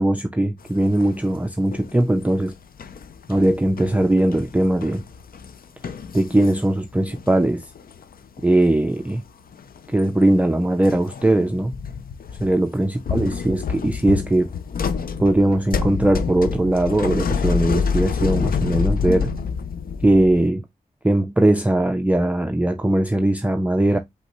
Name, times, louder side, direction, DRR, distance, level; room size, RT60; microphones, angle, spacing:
voice 1, 0.0-2.5 3.3-5.0 6.1-7.6 8.4-9.2 9.9-11.7 12.4-14.5 15.2-19.3 20.0-20.6 21.0-24.0, right 1 dB, 10° right, 0.4 m, -20 dB
sound 1, 0.8-1.4 1.7-7.3 7.6-8.7 8.9-9.2 9.5-10.2 10.8-12.5 12.9-20.5, left 6 dB, 75° left, 0.5 m, -28 dB
5.4 x 3.3 x 3.0 m
wide cardioid pair, 145°, 15 cm